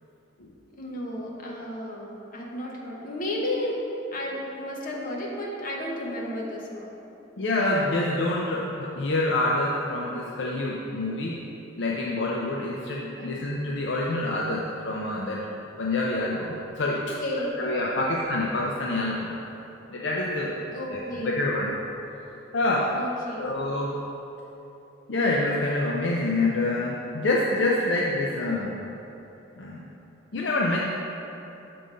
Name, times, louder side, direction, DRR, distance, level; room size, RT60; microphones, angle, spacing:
voice 1, 0.7-3.8 4.1-7.0 13.2-13.3 16.9-17.6 17.9-18.1 20.7-21.5 22.9-23.5, left 1 dB, 45° left, -2 dB, 1.0 m, -33 dB
voice 2, 7.4-11.4 11.8-15.4 15.8-17.0 17.6-19.3 19.9-20.6 20.9-21.7 22.5-23.0 23.4-24.0 25.1-28.8 29.6-29.9 30.3-30.8, left 2 dB, 65° left, -3 dB, 0.5 m, -26 dB
6.8 x 3.8 x 5.1 m, 3.0 s
head